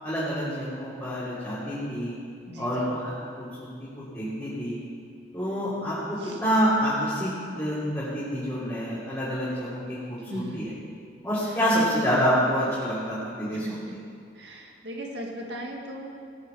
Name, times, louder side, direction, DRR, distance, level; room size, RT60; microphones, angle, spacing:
voice 1, 0.0-2.2 2.6-4.8 5.3-7.3 7.6-10.7 11.2-14.0, equal, 15° left, -12 dB, 3.2 m, -27 dB
voice 2, 2.5-2.9 6.2-6.4 10.3-10.7 13.5-14.0 14.4-16.1, equal, 65° right, 0 dB, 2.1 m, -38 dB
17.5 x 6.7 x 7.1 m, 2.3 s
head